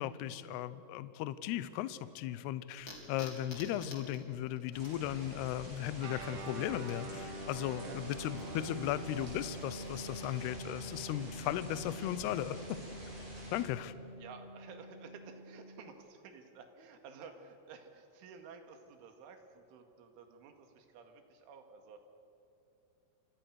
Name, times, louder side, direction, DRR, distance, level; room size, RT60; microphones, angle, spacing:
voice 1, 0.0-12.8 13.5-13.9, left 12 dB, 80° left, 14 dB, 2.4 m, -37 dB
sound 1, 2.8-10.4, left 2 dB, 25° left, 3.8 m, -55 dB
sound 2, 4.7-13.6, right 1 dB, 25° right, 8.1 m, -48 dB
Guitar, 6.0-15.9, right 1 dB, 50° right, 1.9 m, -46 dB
voice 2, 7.8-8.8 14.2-22.0, right 5 dB, 75° right, 5 dB, 4.4 m, -53 dB
30.0 x 25.0 x 6.4 m, 2.8 s
omnidirectional pair, 5.7 m